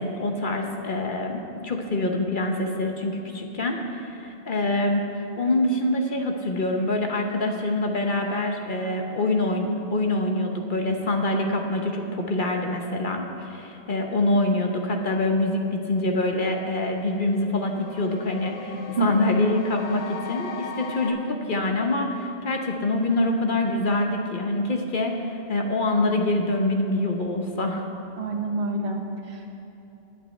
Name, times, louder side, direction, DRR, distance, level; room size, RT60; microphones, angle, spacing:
voice 1, 0.0-5.0 5.4-27.8, left 2 dB, 50° left, 2 dB, 1.0 m, -25 dB
sound 1, 15.7-21.1, left 5 dB, 90° left, 1.2 m, -40 dB
voice 2, 28.2-29.6, right 3 dB, 65° right, 2 dB, 1.4 m, -28 dB
20.5 x 8.4 x 3.3 m, 2.9 s
omnidirectional pair, 1.2 m